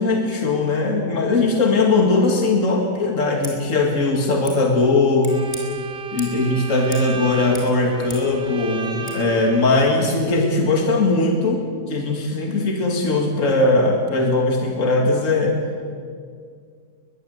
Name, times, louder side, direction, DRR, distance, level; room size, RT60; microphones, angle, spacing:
voice 1, 0.0-5.4 6.1-15.6, left 3 dB, 55° left, 2 dB, 2.7 m, -19 dB
Scissors, 3.3-3.6 4.4-4.6 5.2-5.6 6.2-6.4 6.9-7.1 7.4-8.3 9.0-9.2, left 1 dB, 20° left, 4.7 m, -38 dB
Bowed string instrument, 5.3-10.0, right 6 dB, 40° right, 1.7 m, -34 dB
21.5 x 21.5 x 8.2 m, 2.1 s
omnidirectional pair, 1.6 m